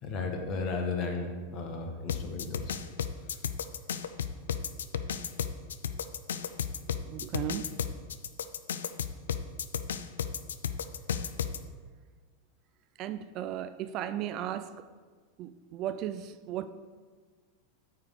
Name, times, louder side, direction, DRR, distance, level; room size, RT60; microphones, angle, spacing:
voice 1, 0.0-2.7, left 4 dB, 45° left, 3 dB, 1.5 m, -34 dB
sound 1, 2.1-11.6, left 8 dB, 85° left, 0.4 m, -33 dB
voice 2, 7.1-7.6 13.0-14.7 15.4-16.7, right 11 dB, 45° right, 12 dB, 0.4 m, -35 dB
8.8 x 3.7 x 6.6 m, 1.5 s
hypercardioid pair, 105°, 0 cm